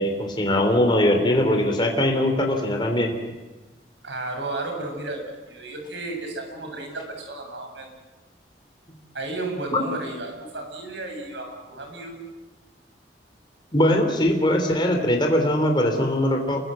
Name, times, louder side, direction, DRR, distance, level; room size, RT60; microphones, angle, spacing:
voice 1, 0.0-3.1 9.7-9.8 13.7-16.7, left 1 dB, 25° left, 3 dB, 3.5 m, -21 dB
voice 2, 4.0-7.9 9.1-12.2, right 2 dB, 90° right, 3 dB, 7.4 m, -33 dB
29.0 x 23.0 x 7.8 m, 1.2 s
head